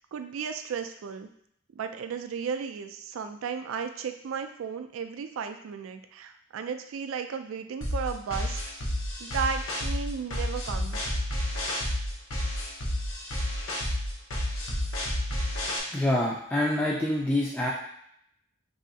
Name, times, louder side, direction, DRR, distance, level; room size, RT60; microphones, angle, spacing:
voice 1, 0.1-1.3 1.7-11.0, right 6 dB, 80° right, 8 dB, 0.3 m, -34 dB
sound 1, 7.8-15.8, left 1 dB, 85° left, 0.8 m, -30 dB
voice 2, 15.9-17.7, left 1 dB, 10° left, -5 dB, 0.3 m, -26 dB
3.2 x 2.7 x 2.6 m, 0.69 s
head